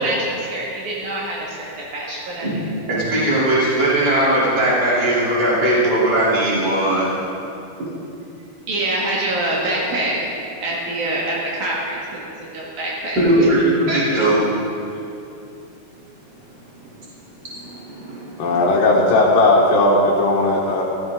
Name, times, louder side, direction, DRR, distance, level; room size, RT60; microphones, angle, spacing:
voice 1, 0.0-2.6 8.7-10.3 10.6-13.5 13.9-14.0, right 1 dB, 65° right, -4 dB, 3.1 m, -25 dB
voice 2, 2.9-7.1 13.2-14.4 17.4-18.5, right 1 dB, 30° right, -9 dB, 3.8 m, -19 dB
voice 3, 18.4-20.8, left 2 dB, 80° left, -5 dB, 2.9 m, -16 dB
15.0 x 14.0 x 3.8 m, 2.8 s
omnidirectional pair, 3.8 m